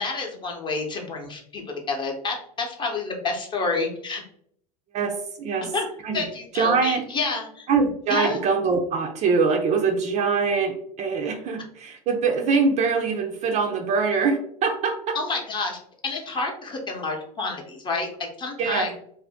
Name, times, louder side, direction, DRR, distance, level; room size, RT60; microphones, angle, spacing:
voice 1, 0.0-4.2 5.6-5.8 6.1-7.7 8.1-8.4 15.1-18.9, left 3 dB, 25° left, 2 dB, 0.8 m, -29 dB
voice 2, 4.9-5.7 6.0-6.3 6.5-7.0 7.7-15.2 18.6-18.9, right 5 dB, 35° right, 4 dB, 0.5 m, -23 dB
2.6 x 2.1 x 3.4 m, 0.64 s
hypercardioid pair, 90°, 20 cm